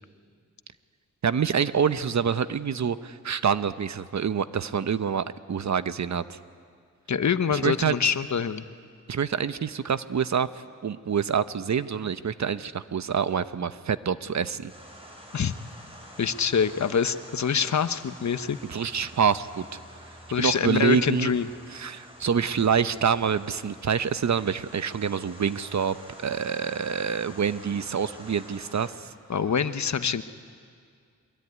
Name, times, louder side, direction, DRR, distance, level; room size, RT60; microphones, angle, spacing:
voice 1, 1.2-6.4 7.5-8.1 9.1-10.5 10.8-14.7 18.7-19.6 20.4-21.3 21.7-26.0 26.2-29.1, right 7 dB, 60° right, 13 dB, 0.8 m, -26 dB
voice 2, 7.1-8.6 15.3-15.6 16.2-18.6 20.3-21.5 29.3-30.2, left 7 dB, 60° left, 12 dB, 1.0 m, -25 dB
sound 1, 14.7-28.9, equal, 15° right, 7.2 m, -48 dB
23.0 x 22.0 x 9.6 m, 2.2 s
cardioid pair, 60°, 31 cm